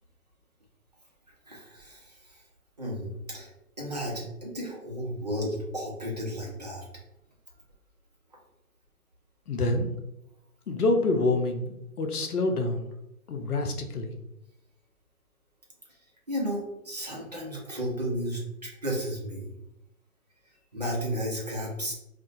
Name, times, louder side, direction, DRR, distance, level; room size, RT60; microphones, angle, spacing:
voice 1, 1.5-2.1 2.8-3.5 3.8-6.8 16.3-19.5 20.7-21.9, equal, 30° right, -3 dB, 0.4 m, -33 dB
voice 2, 9.5-9.9 10.7-12.9 13.3-14.1, left 2 dB, 85° left, 4 dB, 0.6 m, -27 dB
2.3 x 2.1 x 2.6 m, 0.87 s
figure-of-eight pair, 140°, 44 cm